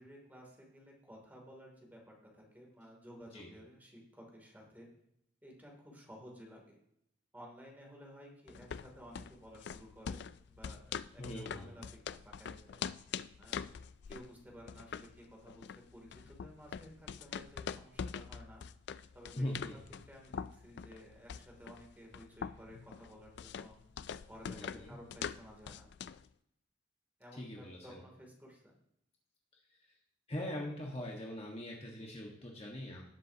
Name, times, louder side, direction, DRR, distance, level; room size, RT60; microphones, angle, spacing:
voice 1, 0.0-4.9 5.4-6.8 7.3-10.3 10.6-12.9 13.4-13.6 14.1-18.6 19.1-19.5 20.0-23.8 24.3-25.9 27.2-28.8, equal, 10° right, -1 dB, 2.8 m, -54 dB
sound 1, 8.5-26.3, left 7 dB, 60° left, 0.3 m, -44 dB
voice 2, 11.2-11.7 19.3-19.8 24.5-25.0 27.3-28.0 29.7-29.9 30.3-33.0, left 1 dB, 30° left, -1 dB, 1.5 m, -42 dB
18.0 x 7.5 x 2.9 m, 0.77 s
head